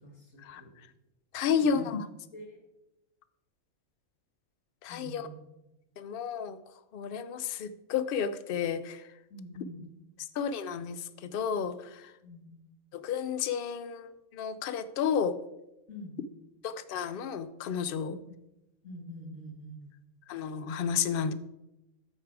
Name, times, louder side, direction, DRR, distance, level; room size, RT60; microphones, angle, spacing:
voice 1, 0.0-0.7 1.4-2.0 2.3-2.6 4.9-5.4 9.3-9.8 12.2-12.5 15.9-16.2 18.0-18.2 18.8-19.9, equal, 50° left, 2 dB, 2.2 m, -45 dB
voice 2, 1.3-2.1 4.8-5.3 6.0-6.6 6.9-9.0 10.4-12.1 12.9-15.4 16.6-18.2 20.3-21.3, left 7 dB, 70° left, 13 dB, 0.5 m, -32 dB
13.0 x 4.8 x 4.7 m, 0.91 s
omnidirectional pair, 1.5 m